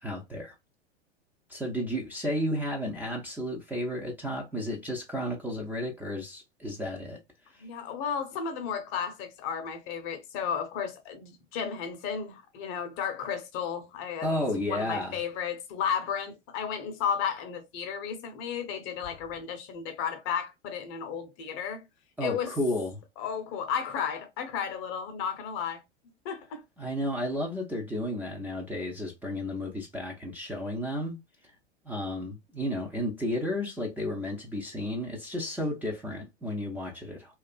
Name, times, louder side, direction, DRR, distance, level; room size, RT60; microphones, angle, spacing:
voice 1, 0.0-0.5 1.5-7.2 7.5-7.6 14.2-15.1 22.2-23.0 26.8-31.2 31.8-37.3, left 1 dB, 5° right, 0.4 m, -32 dB
voice 2, 7.6-14.3 14.7-21.8 22.2-22.5 23.2-25.8 26.2-26.6, left 7 dB, 40° left, 0.7 m, -33 dB
2.4 x 2.3 x 2.3 m
figure-of-eight pair, 90°, 34 cm